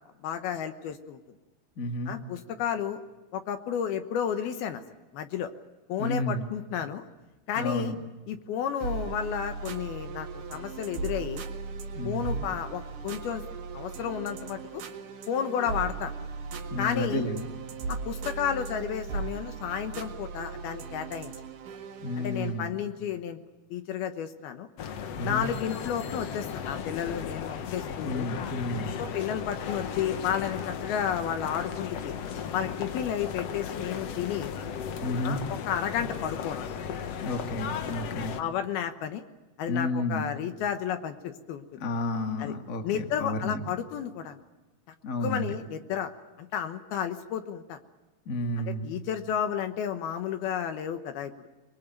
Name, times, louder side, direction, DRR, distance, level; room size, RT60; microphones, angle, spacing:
voice 1, 0.2-1.2 2.1-3.0 3.3-4.8 5.1-5.5 5.9-7.0 7.5-7.9 8.3-11.4 12.0-13.4 13.7-14.8 15.3-16.1 16.8-17.2 17.9-21.3 22.2-23.4 23.7-24.7 25.2-28.3 29.0-32.1 32.5-34.5 35.2-36.6 38.4-39.2 39.6-41.7 42.4-42.5 42.8-44.4 45.2-46.1 46.4-47.8 48.6-51.5, left 8 dB, 70° left, 8 dB, 2.9 m, -32 dB
voice 2, 1.8-2.1 6.0-6.5 7.5-8.0 11.9-12.5 16.7-17.5 22.0-22.7 25.2-25.5 28.0-29.0 35.0-35.4 36.0-36.1 37.2-38.4 39.7-40.3 41.8-43.6 45.0-45.5 48.2-48.9, left 1 dB, 30° left, 5 dB, 1.6 m, -31 dB
sound 1, 8.8-22.6, right 4 dB, 55° right, 3.0 m, -37 dB
sound 2, 24.8-38.4, left 7 dB, 90° left, 1.4 m, -36 dB
24.5 x 22.5 x 9.1 m, 1.1 s
omnidirectional pair, 4.9 m